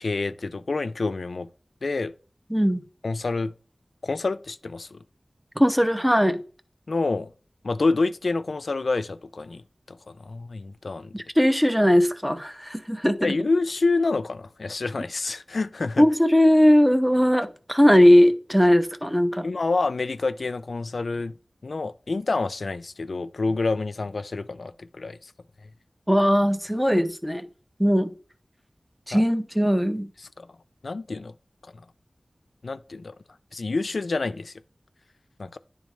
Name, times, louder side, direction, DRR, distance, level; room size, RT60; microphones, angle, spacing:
voice 1, 0.0-1.5 1.8-2.1 3.0-3.5 4.0-5.0 6.9-7.3 7.6-9.6 9.9-11.2 13.2-16.1 19.4-21.3 21.6-25.3 29.1-29.3 30.2-30.5 30.8-31.3 31.6-31.7 32.6-33.1 33.5-34.5 35.4-35.6, left 3 dB, 85° left, 0.3 m, -28 dB
voice 2, 2.5-2.8 5.6-6.4 11.1-13.2 16.0-19.5 26.1-27.4 27.8-28.1 29.1-30.1, equal, 5° right, 0.6 m, -19 dB
10.0 x 3.6 x 3.2 m
wide cardioid pair, 65°, 0 cm